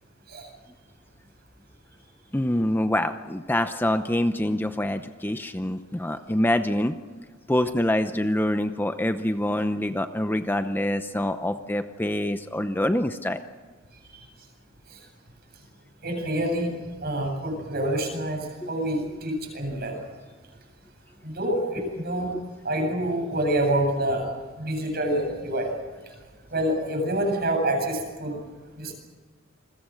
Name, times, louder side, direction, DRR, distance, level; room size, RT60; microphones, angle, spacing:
voice 1, 2.3-7.0 7.5-13.4 18.6-18.7, left 1 dB, 10° left, 9 dB, 0.7 m, -25 dB
voice 2, 16.0-16.8 17.0-20.0 21.2-22.3 22.6-24.3 24.6-25.7 26.5-28.4 28.8-28.9, right 1 dB, 50° right, 2 dB, 7.9 m, -27 dB
29.0 x 22.0 x 6.5 m, 1.4 s
head